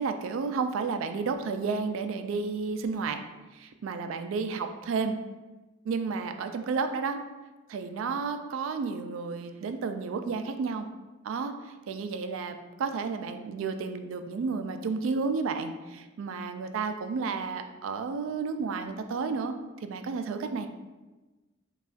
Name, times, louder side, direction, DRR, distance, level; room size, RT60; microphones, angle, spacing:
voice 1, 0.0-3.2 3.5-5.2 5.9-7.2 7.7-10.9 11.2-19.5 19.8-20.7, right 4 dB, 70° right, 8 dB, 0.3 m, -32 dB
4.9 x 2.4 x 2.4 m, 1.2 s
head